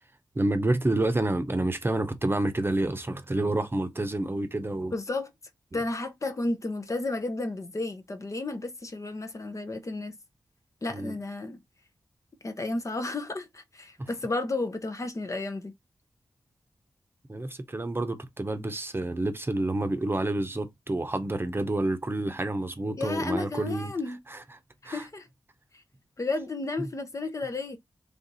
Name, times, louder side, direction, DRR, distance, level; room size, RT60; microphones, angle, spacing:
voice 1, 0.4-4.9 10.9-11.2 14.0-14.1 17.3-23.9 24.3-24.4 24.8-25.1 26.8-26.9, right 2 dB, 30° right, 0.8 m, -29 dB
voice 2, 4.9-5.3 5.7-10.1 10.8-11.6 12.4-15.7 23.0-24.2 24.8-25.3 26.2-27.8, left 2 dB, 45° left, 0.9 m, -32 dB
3.5 x 2.6 x 4.0 m
cardioid pair, 40°, 7 cm